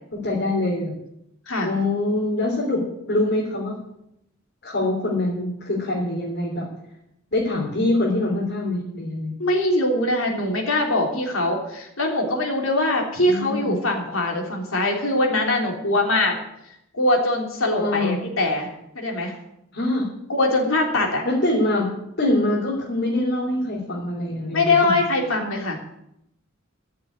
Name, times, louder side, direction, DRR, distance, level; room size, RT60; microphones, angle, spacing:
voice 1, 0.1-1.0 1.6-3.7 4.6-6.7 7.3-9.3 13.2-13.7 17.8-18.2 19.7-20.1 21.2-21.9 22.2-24.9, left 1 dB, 55° left, -4 dB, 3.5 m, -24 dB
voice 2, 9.4-16.3 16.9-18.7 18.9-19.4 20.3-21.2 24.5-25.8, left 2 dB, 85° left, 1 dB, 3.3 m, -22 dB
14.5 x 6.7 x 9.5 m, 0.80 s
head